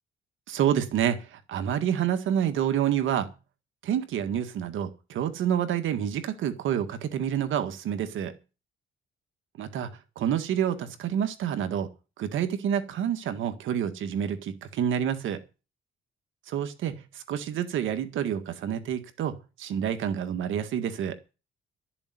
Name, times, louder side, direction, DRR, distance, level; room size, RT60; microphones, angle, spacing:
voice 1, 0.5-3.3 3.8-8.3 9.6-9.9 10.2-11.9 12.2-15.4 16.5-21.2, right 9 dB, 80° right, 1.8 m, -28 dB
12.5 x 7.0 x 9.2 m
cardioid pair, 90°, 20 cm